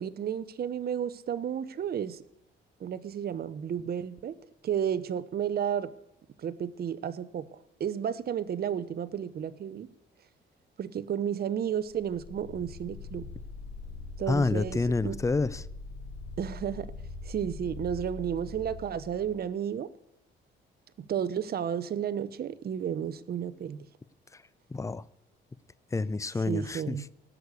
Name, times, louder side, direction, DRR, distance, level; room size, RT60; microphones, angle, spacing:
voice 1, 0.0-2.2 2.8-4.4 4.6-5.9 6.4-7.4 7.8-9.9 10.8-13.3 14.2-15.2 16.4-16.9 17.2-19.9 21.0-23.9 26.4-27.1, right 8 dB, 50° right, 0.8 m, -32 dB
sound 1, 11.8-19.5, left 3 dB, 60° left, 4.1 m, -42 dB
voice 2, 14.3-15.6 24.7-25.0 25.9-27.0, left 3 dB, 15° left, 0.5 m, -28 dB
17.0 x 6.5 x 8.3 m
cardioid pair, 90°, 20 cm